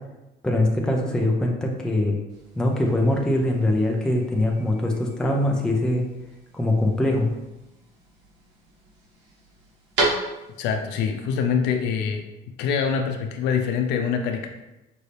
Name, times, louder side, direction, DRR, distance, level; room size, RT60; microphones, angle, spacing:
voice 1, 0.4-2.2 2.6-6.0 6.5-7.3, left 1 dB, 5° left, 0 dB, 0.5 m, -22 dB
sound 1, 2.3-10.8, right 2 dB, 80° right, 1.3 m, -34 dB
voice 2, 10.6-12.3 12.6-14.5, left 6 dB, 80° left, 5 dB, 0.6 m, -24 dB
5.3 x 2.7 x 3.3 m, 0.98 s
cardioid pair, 160°, 17 cm